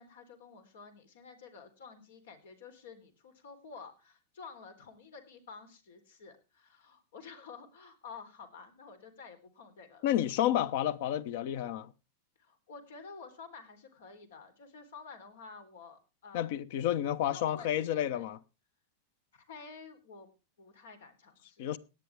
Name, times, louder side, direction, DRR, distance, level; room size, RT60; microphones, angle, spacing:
voice 1, 0.0-10.1 12.4-16.5 17.2-18.3 19.3-20.3 20.6-21.7, left 5 dB, 85° left, 3.8 m, -51 dB
voice 2, 10.0-11.9 16.3-18.4 21.6-21.8, left 11 dB, 65° left, 1.0 m, -30 dB
18.0 x 10.5 x 3.5 m
supercardioid pair, 145°, 0 cm